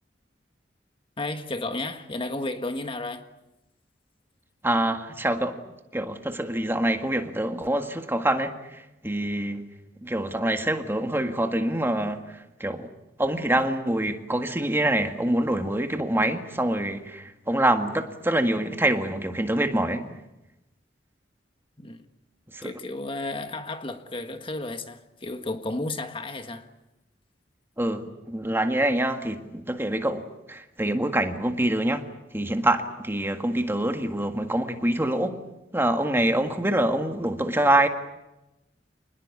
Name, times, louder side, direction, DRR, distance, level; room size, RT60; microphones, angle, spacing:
voice 1, 1.2-3.3 21.8-22.0 22.6-26.7, left 2 dB, 30° left, 1.5 m, -33 dB
voice 2, 4.6-5.6 5.9-9.7 10.0-12.9 13.2-20.1 22.5-22.7 27.8-35.4 35.7-37.9, right 1 dB, 15° right, 1.8 m, -25 dB
27.5 x 20.5 x 8.4 m
head